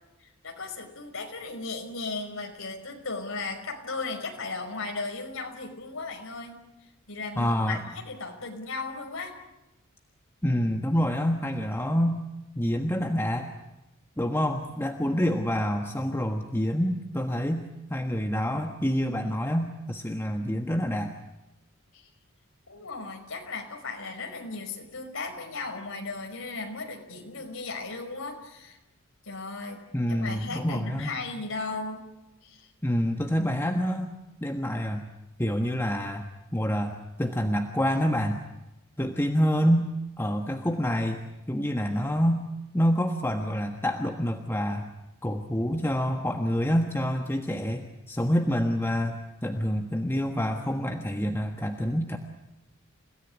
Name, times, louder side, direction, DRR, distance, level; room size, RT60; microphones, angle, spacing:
voice 1, 0.2-6.6 7.1-9.3 21.9-22.1 22.7-28.8 29.2-29.8 30.1-32.0 32.4-32.7, left 3 dB, 65° left, 3 dB, 5.4 m, -36 dB
voice 2, 7.4-7.8 10.4-12.2 12.5-13.5 14.2-21.1 29.9-31.1 32.8-34.1 34.4-35.1 35.4-38.4 39.0-39.9 40.2-42.4 42.7-44.9 45.2-52.2, equal, 10° left, 4 dB, 1.4 m, -27 dB
29.0 x 17.5 x 10.0 m, 0.97 s
head